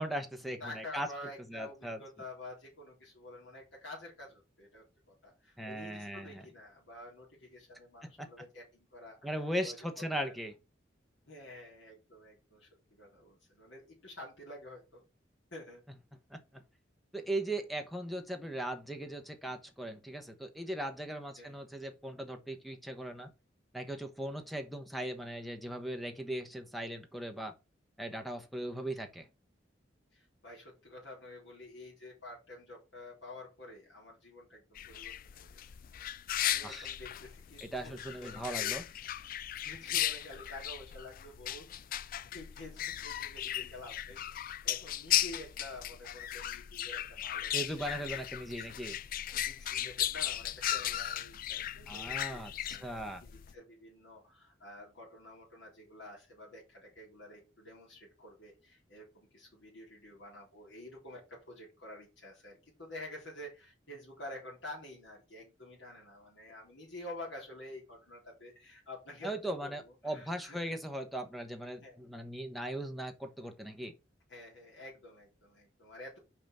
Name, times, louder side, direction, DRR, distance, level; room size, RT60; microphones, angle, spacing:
voice 1, 0.0-1.1 1.5-2.0 5.6-6.4 8.0-8.3 9.2-10.5 16.3-16.6 17.1-23.3 23.7-27.5 28.0-29.3 36.6-36.9 37.6-38.8 47.5-49.0 51.9-53.2 69.2-73.9, right 1 dB, ahead, 1.1 m, -39 dB
voice 2, 0.6-10.4 11.3-15.0 15.5-15.8 21.4-21.6 30.1-35.8 36.4-39.3 39.6-41.7 42.3-44.2 44.6-47.5 47.8-48.7 49.3-70.8 71.8-72.2 74.3-76.2, left 1 dB, 75° left, 3.6 m, -49 dB
sound 1, 34.8-53.5, left 12 dB, 50° left, 0.3 m, -36 dB
5.8 x 5.2 x 5.6 m
head